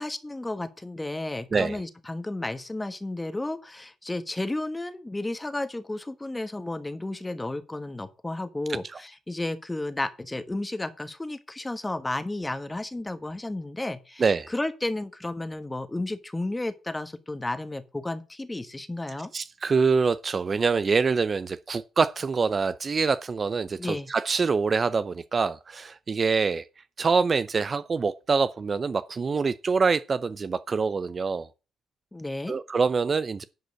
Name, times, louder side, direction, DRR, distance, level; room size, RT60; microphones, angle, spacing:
voice 1, 0.0-14.2 14.5-19.3 23.8-24.1 32.1-32.5, left 2 dB, 15° left, 1.3 m, -32 dB
voice 2, 8.7-9.0 14.2-14.5 19.3-26.6 27.0-31.5 32.5-33.4, right 5 dB, 35° right, 0.5 m, -25 dB
11.0 x 5.1 x 6.4 m
cardioid pair, 90°, 0 cm